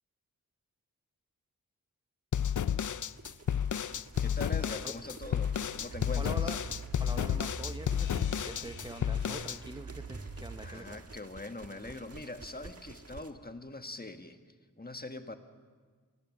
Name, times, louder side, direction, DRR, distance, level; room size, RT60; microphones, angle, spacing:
sound 1, 2.3-9.6, left 9 dB, 60° left, 0.5 m, -31 dB
sound 2, 3.2-13.3, right 3 dB, 45° right, 1.5 m, -51 dB
voice 1, 4.2-6.5 10.6-14.4 14.8-15.4, left 2 dB, 25° left, 7 dB, 1.5 m, -43 dB
sound 3, 5.2-10.8, right 3 dB, 80° right, 2.6 m, -45 dB
voice 2, 6.2-6.6 7.0-11.0, right 1 dB, 15° right, 7 dB, 0.8 m, -44 dB
24.0 x 17.5 x 7.3 m, 1.5 s
wide cardioid pair, 55°, 34 cm